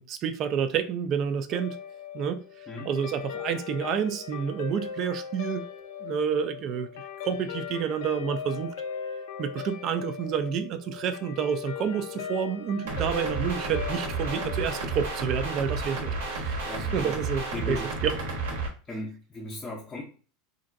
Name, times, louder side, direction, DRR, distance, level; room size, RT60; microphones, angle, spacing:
voice 1, 0.0-1.8 2.1-2.5 2.9-5.7 6.0-6.9 7.2-8.7 9.4-17.8 18.0-18.1, right 7 dB, 40° right, 0.3 m, -29 dB
Guitar, 1.5-16.1, left 7 dB, 80° left, 0.3 m, -39 dB
sound 1, 12.9-18.7, right 3 dB, 90° right, 1.1 m, -31 dB
voice 2, 16.6-17.2 17.5-17.9 18.9-20.0, left 1 dB, 15° left, 0.6 m, -37 dB
2.9 x 2.6 x 2.5 m
supercardioid pair, 145°, 0 cm